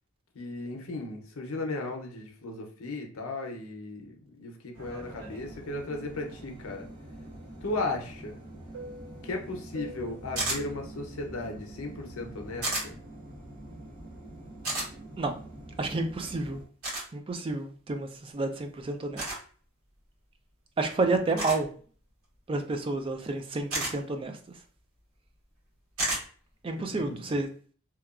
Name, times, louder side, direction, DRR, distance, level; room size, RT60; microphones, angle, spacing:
voice 1, 0.3-6.9 7.6-8.4 9.2-13.0 26.8-27.4, left 2 dB, 75° left, 0.6 m, -36 dB
sound 1, 4.7-16.6, right 1 dB, 65° right, 1.0 m, -45 dB
sound 2, 10.4-10.6 12.6-12.9 14.6-14.9 16.8-17.1 19.2-19.4 21.4-21.6 23.7-23.9 26.0-26.2, right 2 dB, 85° right, 1.3 m, -30 dB
voice 2, 15.8-16.6 17.1-19.2 20.8-21.7 22.5-24.4 26.6-27.5, right 3 dB, 25° right, 0.3 m, -30 dB
2.9 x 2.2 x 2.3 m
head